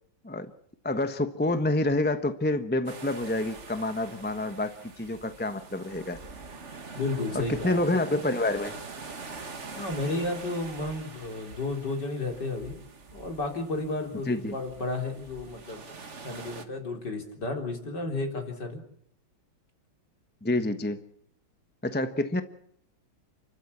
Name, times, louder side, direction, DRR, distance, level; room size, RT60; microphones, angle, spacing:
voice 1, 0.8-6.2 7.3-8.7 14.3-14.5 20.4-21.0 21.8-22.4, left 2 dB, 10° left, 9 dB, 0.8 m, -28 dB
sound 1, 2.9-16.7, right 4 dB, 35° right, 2.0 m, -44 dB
voice 2, 6.9-7.8 9.7-12.8 13.1-15.8 16.2-18.8, left 2 dB, 55° left, 3 dB, 4.5 m, -32 dB
29.5 x 13.0 x 8.5 m, 0.69 s
omnidirectional pair, 2.2 m